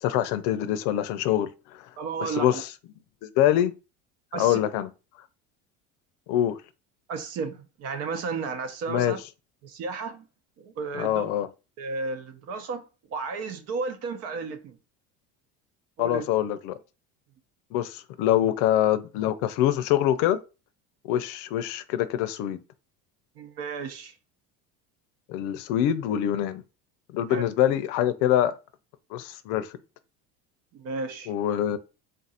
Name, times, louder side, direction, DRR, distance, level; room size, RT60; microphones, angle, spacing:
voice 1, 0.0-1.9 2.2-2.7 3.2-3.7 4.3-4.9 6.3-6.6 8.9-9.2 10.9-11.5 16.0-16.7 17.7-20.4 21.0-22.6 25.3-26.6 27.1-28.5 29.1-29.7 31.3-31.8, left 11 dB, 75° left, 0.6 m, -25 dB
voice 2, 2.0-2.6 4.3-4.6 7.1-9.2 9.6-10.2 10.6-11.3 11.8-12.8 13.1-14.8 16.0-16.2 23.4-24.1 27.3-27.4 30.7-31.3, right 4 dB, 50° right, 0.8 m, -33 dB
3.8 x 2.5 x 4.1 m
cardioid pair, 155°, 32 cm